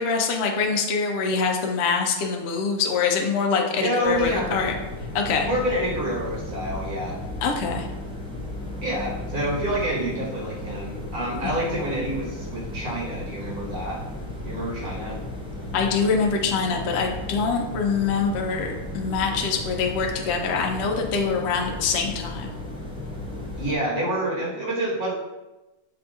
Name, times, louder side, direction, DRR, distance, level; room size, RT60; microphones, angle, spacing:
voice 1, 0.0-4.7 5.1-5.5 7.4-7.9 11.4-11.7 15.7-22.5, left 5 dB, 65° left, 2 dB, 0.6 m, -24 dB
voice 2, 3.8-4.6 5.4-7.2 8.8-14.0 14.5-15.2 23.6-25.1, right 1 dB, 65° right, -6 dB, 1.7 m, -28 dB
sound 1, 4.0-23.8, left 1 dB, 10° right, 0.3 m, -35 dB
6.6 x 2.6 x 2.3 m, 1.1 s
omnidirectional pair, 1.6 m